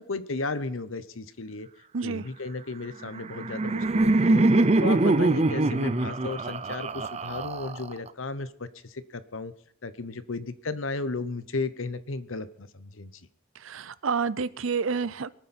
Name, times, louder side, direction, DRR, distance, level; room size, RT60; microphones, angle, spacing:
voice 1, 0.0-1.7 2.0-4.4 4.8-9.5 9.8-13.1, left 3 dB, 85° left, 13 dB, 1.0 m, -34 dB
voice 2, 1.9-2.2 13.6-15.3, right 5 dB, 85° right, 17 dB, 0.6 m, -29 dB
Laughter, 3.0-8.1, right 2 dB, 35° right, 0.6 m, -23 dB
23.0 x 9.3 x 4.3 m, 0.68 s
head